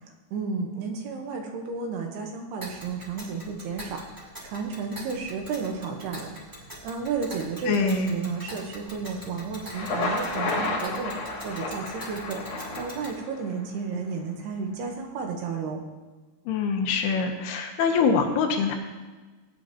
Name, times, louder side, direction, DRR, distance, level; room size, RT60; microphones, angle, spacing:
voice 1, 0.0-15.8, right 5 dB, 75° right, 2 dB, 3.1 m, -33 dB
Tick, 2.6-13.2, equal, 10° right, 1.0 m, -43 dB
voice 2, 7.7-8.2 16.5-18.7, left 5 dB, 75° left, 4 dB, 3.0 m, -24 dB
Thunder, 9.6-13.5, left 2 dB, 50° left, 2.5 m, -31 dB
19.0 x 9.4 x 3.0 m, 1.3 s
omnidirectional pair, 4.9 m